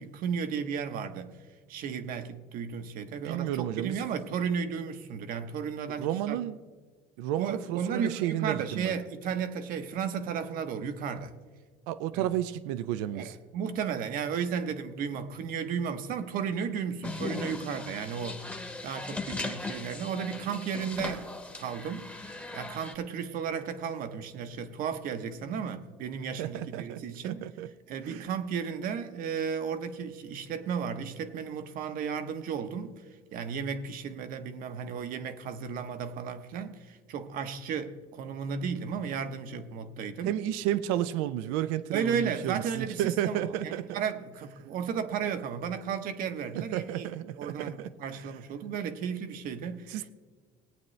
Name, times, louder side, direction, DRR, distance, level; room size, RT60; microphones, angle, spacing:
voice 1, 0.0-1.4 1.7-6.4 7.4-11.3 12.1-12.3 13.1-27.5 27.9-33.0 33.3-40.3 41.9-47.1 47.4-50.0, right 7 dB, 60° right, 0.9 m, -34 dB
voice 2, 3.2-4.0 5.9-6.6 7.2-9.0 11.9-13.4 26.4-27.7 28.0-28.3 40.2-44.0 46.5-47.9 49.9-50.1, right 12 dB, 90° right, 0.5 m, -32 dB
sound 1, 17.0-22.9, left 3 dB, 10° left, 1.0 m, -38 dB
19.5 x 8.8 x 3.2 m
cardioid pair, 125°, 17 cm